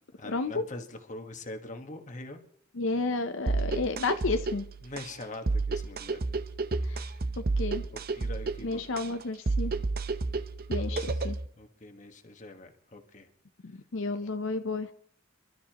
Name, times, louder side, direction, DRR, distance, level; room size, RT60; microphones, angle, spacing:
voice 1, 0.2-2.4 4.8-6.2 7.0-7.2 8.1-8.8 10.8-13.3 14.2-14.3, left 2 dB, 40° left, 1.5 m, -43 dB
voice 2, 2.8-4.6 6.8-7.0 7.6-7.8 8.6-9.7 10.7-11.4 13.6-14.9, left 3 dB, 80° left, 0.7 m, -31 dB
sound 1, 3.5-11.5, right 3 dB, 50° right, 0.8 m, -31 dB
27.5 x 12.5 x 3.0 m
head